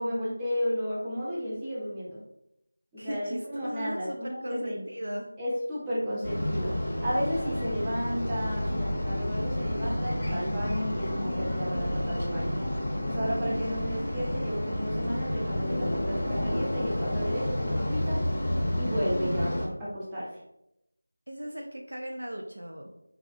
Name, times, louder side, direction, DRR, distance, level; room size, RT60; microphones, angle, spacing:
voice 1, 0.0-2.2 2.9-4.8 5.4-6.7 7.0-12.6 12.9-18.2 18.7-20.4, equal, 10° right, -9 dB, 0.5 m, -33 dB
voice 2, 3.0-5.3 21.3-22.9, equal, 85° right, 2 dB, 0.3 m, -37 dB
sound 1, 6.2-19.7, left 1 dB, 35° left, 0.6 m, -30 dB
2.3 x 2.0 x 2.7 m, 0.84 s
figure-of-eight pair, 175°, 0 cm